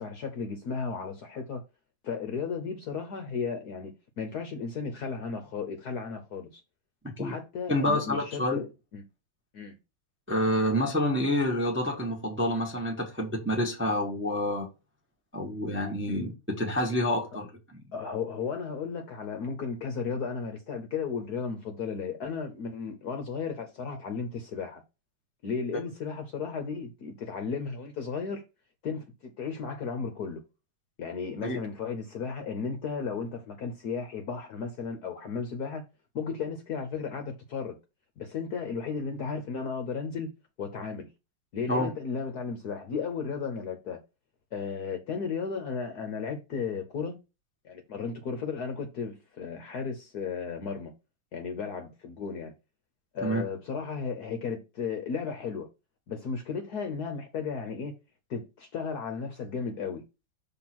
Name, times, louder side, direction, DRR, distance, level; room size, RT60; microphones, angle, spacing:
voice 1, 0.0-1.6 2.0-3.9 4.2-6.6 7.2-9.0 9.5-9.7 16.1-16.2 17.9-24.8 25.4-28.4 28.8-30.4 31.0-35.8 36.1-37.8 38.2-40.3 40.6-41.1 41.5-44.0 44.5-47.2 47.6-50.9 51.3-52.5 53.1-55.7 56.1-57.9 58.3-60.0, left 5 dB, 60° left, 1.1 m, -34 dB
voice 2, 7.7-8.6 10.3-14.7 15.3-17.5 31.4-31.6 41.7-41.9 53.2-53.4, left 1 dB, 10° right, 0.8 m, -28 dB
5.9 x 3.7 x 6.0 m
omnidirectional pair, 2.4 m